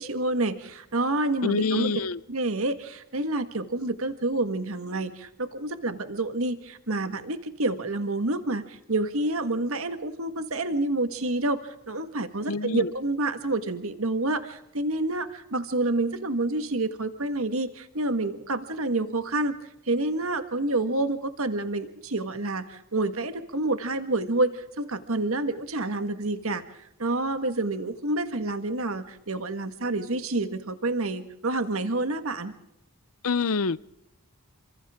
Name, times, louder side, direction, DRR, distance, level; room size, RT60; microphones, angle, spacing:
voice 1, 0.0-1.9 2.3-19.5 19.9-26.6 27.0-32.5, right 2 dB, 70° right, 1.6 m, -28 dB
voice 2, 1.4-2.2 12.5-12.9 33.2-33.8, left 4 dB, 75° left, 0.7 m, -26 dB
29.0 x 26.0 x 3.7 m
head